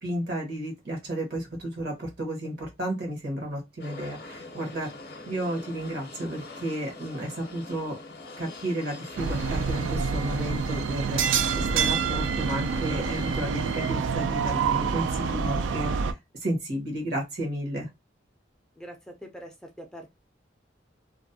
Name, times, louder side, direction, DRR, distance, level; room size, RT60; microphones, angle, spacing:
voice 1, 0.0-4.9 5.3-8.0 8.4-17.9, right 1 dB, 60° right, 1.0 m, -32 dB
sound 1, 3.8-13.4, left 2 dB, 55° left, 0.6 m, -44 dB
sound 2, 9.2-16.1, right 6 dB, 85° right, 0.3 m, -27 dB
voice 2, 18.8-20.1, equal, 5° left, 0.4 m, -43 dB
2.5 x 2.1 x 2.6 m
head